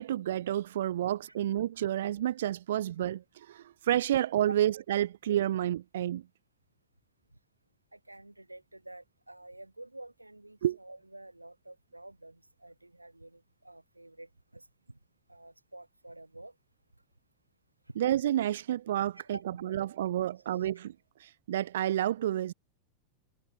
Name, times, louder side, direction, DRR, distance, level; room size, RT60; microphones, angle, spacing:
voice 1, 0.0-3.2 3.5-6.2 10.6-10.8 18.0-20.9 21.5-22.5, right 12 dB, 60° right, 1.0 m, -30 dB
voice 2, 7.9-15.0 15.3-16.6 17.9-18.0 19.1-19.4 20.6-20.7, right 1 dB, 85° right, 5.4 m, -49 dB
figure-of-eight pair, 90°, 0 cm